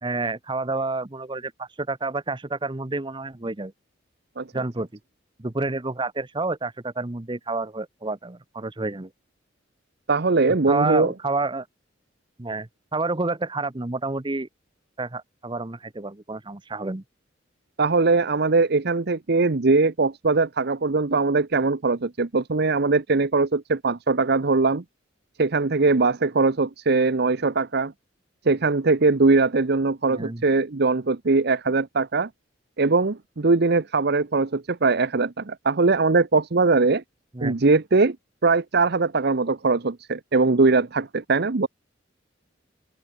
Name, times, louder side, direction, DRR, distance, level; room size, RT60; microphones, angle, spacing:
voice 1, 0.0-3.7 4.5-4.9 5.4-9.1 10.7-11.7 12.4-14.5 15.0-17.0 30.1-30.4 37.3-37.6, right 3 dB, 25° right, 0.9 m, -29 dB
voice 2, 10.1-11.1 17.8-24.8 25.4-27.9 28.4-32.3 32.8-37.0 37.4-38.2 38.4-41.7, right 3 dB, 55° right, 0.9 m, -21 dB
open air
head